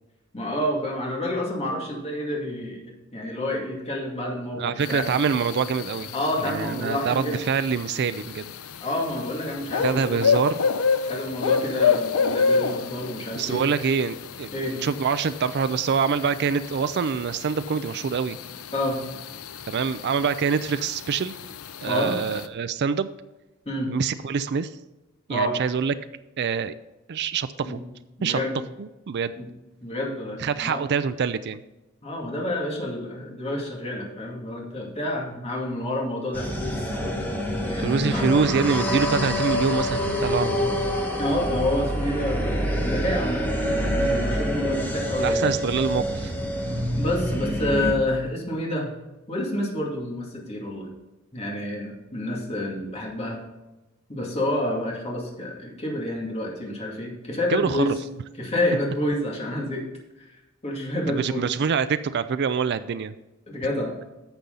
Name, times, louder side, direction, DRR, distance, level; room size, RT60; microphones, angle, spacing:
voice 1, 0.3-5.1 6.1-7.4 8.8-10.2 11.0-13.6 14.5-14.8 18.7-19.0 21.9-22.1 23.7-23.9 25.3-25.6 27.6-27.8 28.2-28.6 29.4-29.5 29.8-30.9 32.0-37.3 37.6-38.3 41.2-42.5 42.8-43.4 43.8-45.5 47.0-48.9 49.3-50.9 51.3-53.4 54.1-57.9 58.4-59.8 60.6-61.4 63.5-63.9, left 1 dB, 30° left, -2 dB, 2.3 m, -28 dB
voice 2, 4.6-8.5 9.8-10.7 13.3-14.5 14.8-18.4 19.7-21.4 21.8-23.1 23.9-24.7 25.3-25.9 26.4-26.8 27.1-27.8 28.2-28.4 28.8-29.3 30.4-31.6 37.8-40.7 45.2-46.3 57.5-57.8 61.1-63.1, right 6 dB, 55° right, 12 dB, 0.4 m, -25 dB
sound 1, 4.8-22.5, left 5 dB, 85° left, 0.6 m, -29 dB
sound 2, 36.3-47.9, equal, 10° left, 1.4 m, -26 dB
11.5 x 7.0 x 3.9 m, 1.0 s
head